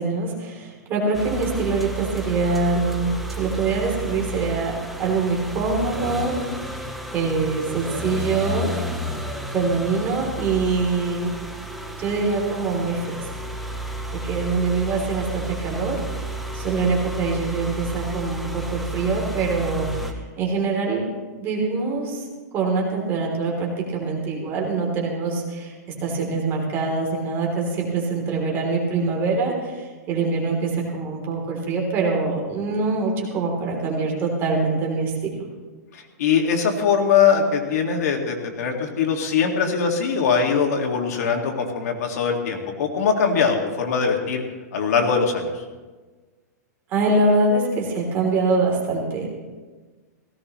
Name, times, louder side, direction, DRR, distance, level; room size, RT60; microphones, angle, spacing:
voice 1, 0.0-6.3 7.1-8.7 9.5-11.3 12.0-13.2 14.2-16.0 16.5-20.0 20.4-21.1 21.4-22.2 22.5-25.7 26.0-29.7 30.1-35.4 46.9-49.3, right 3 dB, 25° right, -1 dB, 3.2 m, -24 dB
sound 1, 1.1-20.1, right 1 dB, ahead, 0.8 m, -32 dB
voice 2, 35.9-44.4 44.7-45.5, left 6 dB, 65° left, 2 dB, 2.1 m, -21 dB
17.5 x 16.0 x 3.1 m, 1.3 s
hypercardioid pair, 160°, 9 cm